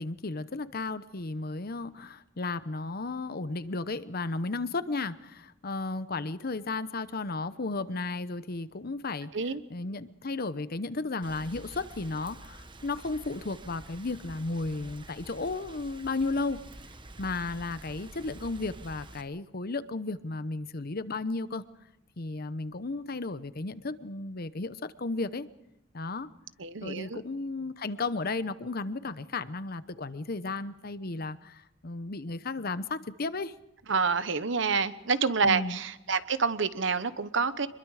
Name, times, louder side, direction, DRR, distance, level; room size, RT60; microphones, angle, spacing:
voice 1, 0.0-9.3 9.7-16.6 17.2-21.6 22.2-25.5 25.9-26.3 26.8-33.5 35.4-35.8, left 3 dB, 50° left, 14 dB, 0.9 m, -34 dB
Rain, 11.2-19.2, right 2 dB, 25° right, 1.2 m, -48 dB
voice 2, 26.6-27.2 33.9-37.7, right 5 dB, 70° right, 13 dB, 1.1 m, -28 dB
25.5 x 22.0 x 4.9 m, 0.89 s
head